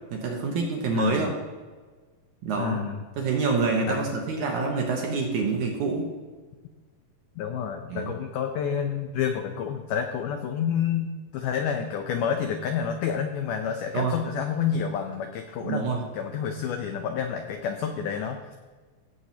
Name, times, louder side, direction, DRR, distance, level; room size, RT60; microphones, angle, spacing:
voice 1, 0.1-1.3 2.4-2.8 3.2-6.1 7.9-8.1 13.9-14.2 15.6-16.0, right 4 dB, 70° right, 0 dB, 2.0 m, -26 dB
voice 2, 0.9-1.3 2.6-3.0 3.9-4.1 7.4-15.8 16.1-18.6, left 7 dB, 85° left, 5 dB, 1.8 m, -29 dB
16.5 x 7.8 x 2.8 m, 1.4 s
omnidirectional pair, 4.4 m